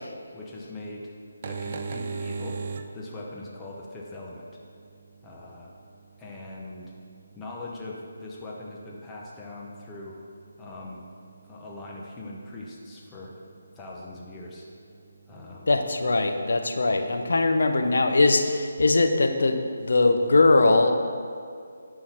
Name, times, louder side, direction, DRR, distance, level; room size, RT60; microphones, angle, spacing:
voice 1, 0.3-1.1 1.4-2.6 2.9-4.4 5.2-5.7 6.2-6.9 7.3-10.2 10.6-11.0 11.4-13.3 13.8-14.7 15.3-15.8, left 2 dB, 10° left, -4 dB, 1.0 m, -41 dB
sound 1, 1.3-18.6, right 4 dB, 40° right, 0.4 m, -44 dB
voice 2, 15.7-20.9, left 3 dB, 70° left, 6 dB, 0.7 m, -21 dB
11.0 x 3.9 x 4.4 m, 2.4 s
figure-of-eight pair, 160°, 0 cm